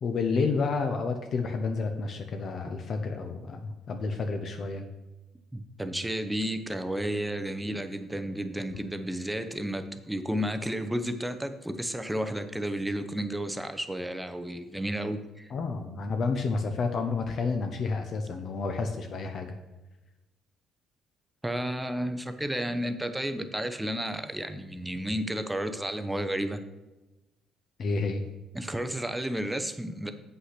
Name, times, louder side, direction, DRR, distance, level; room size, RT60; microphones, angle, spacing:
voice 1, 0.0-4.9 15.5-19.5 27.8-28.2, left 4 dB, 45° left, 5 dB, 0.7 m, -30 dB
voice 2, 5.5-15.5 21.4-26.6 28.5-30.1, right 1 dB, 5° right, 9 dB, 0.7 m, -32 dB
8.2 x 5.6 x 5.8 m, 1.1 s
cardioid pair, 140°, 0 cm